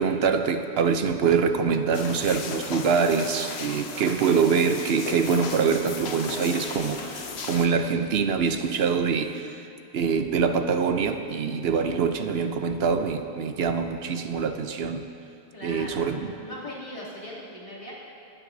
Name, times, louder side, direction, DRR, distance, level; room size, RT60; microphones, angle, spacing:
voice 1, 0.0-15.1 15.6-16.4, right 5 dB, 75° right, 8 dB, 0.9 m, -24 dB
sound 1, 1.9-7.7, left 5 dB, 80° left, 1.0 m, -36 dB
voice 2, 11.9-12.3 15.5-16.1 16.4-17.9, left 1 dB, 45° left, -8 dB, 3.0 m, -40 dB
23.0 x 9.6 x 2.7 m, 2.7 s
omnidirectional pair, 1.0 m